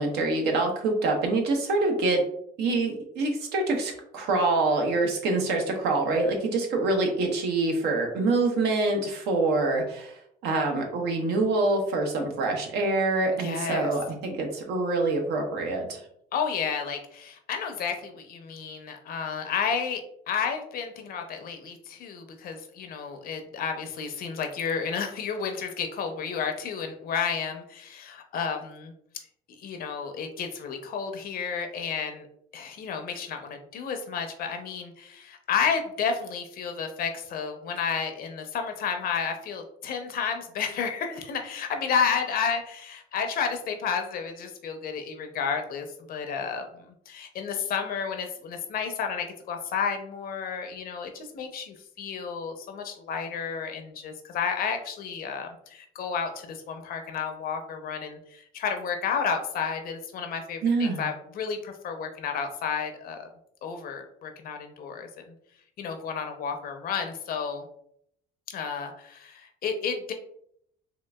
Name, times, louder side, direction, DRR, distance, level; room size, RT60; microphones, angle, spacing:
voice 1, 0.0-2.2 2.6-16.0 60.6-61.0, right 3 dB, 80° right, 2 dB, 0.8 m, -25 dB
voice 2, 13.4-13.9 16.3-20.0 20.3-29.2 29.5-32.3 32.5-46.7 47.1-63.3 63.6-65.2 65.8-67.7 68.5-70.1, left 6 dB, 60° left, 5 dB, 0.6 m, -31 dB
3.7 x 2.4 x 2.2 m, 0.69 s
cardioid pair, 110°, 17 cm